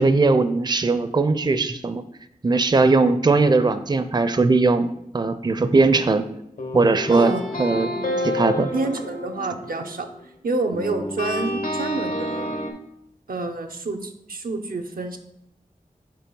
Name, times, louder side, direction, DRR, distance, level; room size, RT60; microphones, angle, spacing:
voice 1, 0.0-2.0 2.4-6.3 6.7-7.3 7.6-7.9 8.2-8.7, right 3 dB, 30° right, 11 dB, 0.4 m, -19 dB
sound 1, 6.6-10.3 10.7-12.7, left 1 dB, 80° left, 1.1 m, -29 dB
voice 2, 7.1-7.5 7.8-8.4 8.7-10.1 10.4-12.6 13.3-15.2, right 3 dB, 85° right, 5 dB, 0.6 m, -28 dB
4.7 x 4.5 x 5.3 m, 0.79 s
wide cardioid pair, 50°, 15 cm